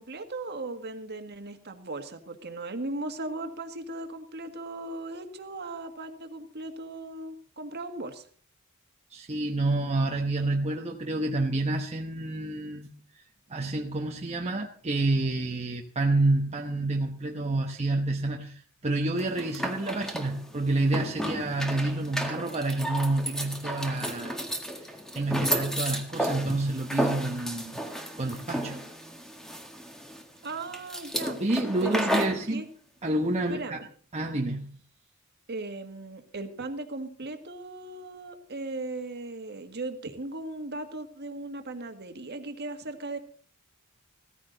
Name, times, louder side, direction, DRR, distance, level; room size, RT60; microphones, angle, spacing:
voice 1, 0.0-8.2 30.4-31.4 31.8-32.6 33.5-33.9 35.5-43.2, right 2 dB, 50° right, 7 dB, 1.8 m, -37 dB
voice 2, 9.1-12.9 13.5-24.4 24.8-27.8 28.2-28.8 31.4-32.6 33.0-33.8 34.1-34.7, right 2 dB, 30° right, 1 dB, 1.1 m, -28 dB
sound 1, 19.2-32.4, equal, ahead, 1.7 m, -33 dB
16.5 x 14.5 x 4.0 m, 0.44 s
head